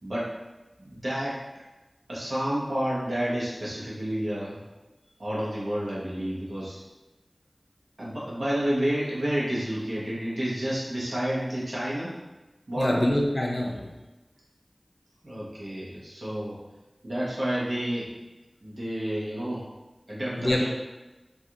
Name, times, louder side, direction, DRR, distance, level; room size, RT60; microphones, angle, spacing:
voice 1, 0.0-0.3 0.8-1.6 2.1-4.6 5.2-6.8 8.0-12.2 12.7-13.0 15.2-16.6 17.0-18.1 18.6-19.7 20.1-20.7, equal, 75° right, -7 dB, 0.8 m, -30 dB
voice 2, 12.8-13.9 20.4-20.7, left 1 dB, 45° left, -1 dB, 0.4 m, -24 dB
2.4 x 2.3 x 2.8 m, 1.1 s
wide cardioid pair, 55°, 0 cm